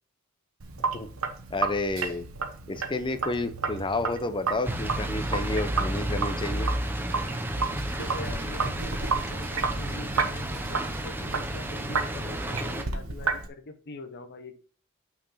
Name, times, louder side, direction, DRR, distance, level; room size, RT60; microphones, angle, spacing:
Sink (filling or washing), 0.6-13.5, right 4 dB, 65° right, 1.1 m, -32 dB
voice 1, 1.5-2.3 2.7-6.7, left 2 dB, 20° left, 10 dB, 0.6 m, -30 dB
sound 1, 4.6-12.8, right 1 dB, 10° right, 0.8 m, -32 dB
voice 2, 7.9-14.6, left 2 dB, 50° left, 8 dB, 0.8 m, -43 dB
6.0 x 4.5 x 5.6 m, 0.41 s
head